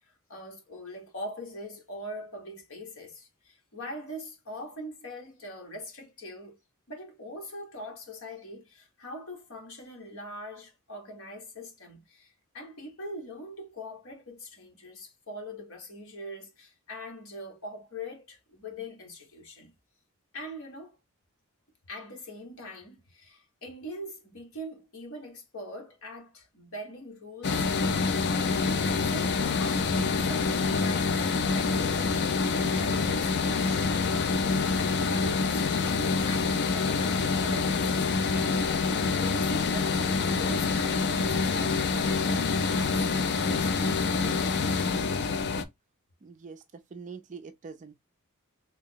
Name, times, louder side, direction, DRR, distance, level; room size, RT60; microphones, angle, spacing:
voice 1, 0.0-6.6 6.9-19.7 20.3-21.0 21.9-34.4 34.8-44.6, left 1 dB, 65° left, 1.3 m, -43 dB
sound 1, 27.4-45.6, left 4 dB, 50° left, 0.4 m, -26 dB
voice 2, 46.2-47.9, right 5 dB, 35° right, 0.4 m, -44 dB
3.4 x 2.0 x 3.6 m
head